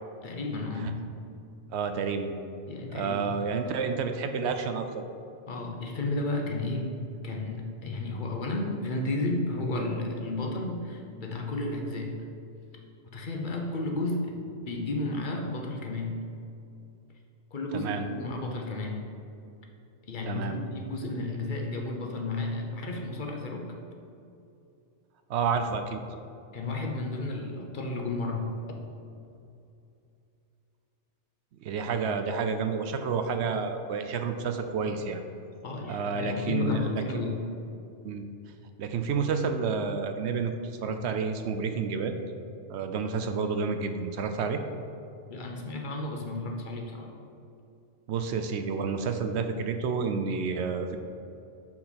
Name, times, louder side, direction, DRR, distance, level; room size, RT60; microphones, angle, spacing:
voice 1, 0.2-1.0 2.7-3.4 5.5-12.2 13.1-16.2 17.5-19.1 20.1-23.8 26.5-28.6 35.6-37.6 45.3-47.1, left 2 dB, 45° left, 1 dB, 0.9 m, -32 dB
voice 2, 1.7-2.3 2.9-5.1 17.7-18.0 20.3-20.6 25.3-26.0 31.6-35.2 35.9-37.0 38.0-38.2 38.8-40.5 40.8-42.2 42.7-44.6 48.1-51.0, right 5 dB, 70° right, 7 dB, 0.8 m, -30 dB
6.5 x 5.8 x 4.2 m, 2.7 s
omnidirectional pair, 1.2 m